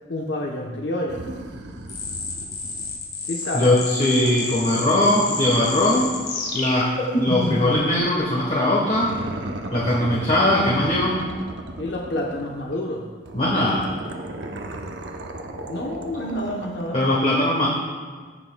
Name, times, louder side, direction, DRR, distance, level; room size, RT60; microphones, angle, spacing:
voice 1, 0.1-1.3 3.2-3.8 11.7-13.1 15.5-17.0, left 1 dB, 85° left, -1 dB, 0.8 m, -29 dB
sound 1, 1.1-3.1 3.4-7.9 8.9-12.8 13.3-17.0, right 1 dB, 80° right, 0.7 m, -37 dB
sound 2, 1.9-7.7, left 2 dB, 60° left, 1.7 m, -29 dB
voice 2, 3.5-6.1 6.5-6.9 7.2-9.2 9.7-11.2 13.3-13.9 16.9-17.7, left 1 dB, 40° left, -4 dB, 1.1 m, -20 dB
17.0 x 5.8 x 2.2 m, 1.5 s
head